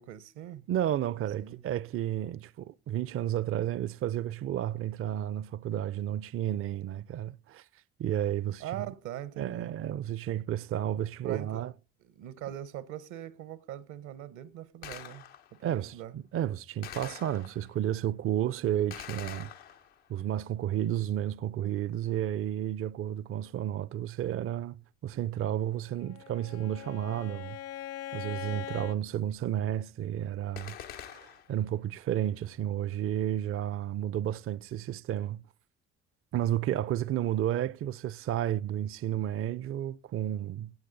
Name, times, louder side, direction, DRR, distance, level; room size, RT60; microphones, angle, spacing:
voice 1, 0.0-0.7 1.1-1.6 8.6-9.7 11.2-11.6 12.0-16.1, right 12 dB, 70° right, 0.9 m, -42 dB
voice 2, 0.7-7.6 8.0-8.9 9.4-11.7 15.6-19.5 20.1-27.6 28.1-35.4 36.3-40.7, right 11 dB, 45° right, 0.5 m, -32 dB
Gunshot gunfire, 14.8-15.6 16.8-17.8 18.9-20.2 30.6-31.6, left 10 dB, 85° left, 1.0 m, -45 dB
Bowed string instrument, 25.8-29.0, left 11 dB, 50° left, 0.5 m, -41 dB
16.5 x 7.8 x 3.9 m
hypercardioid pair, 50°, 31 cm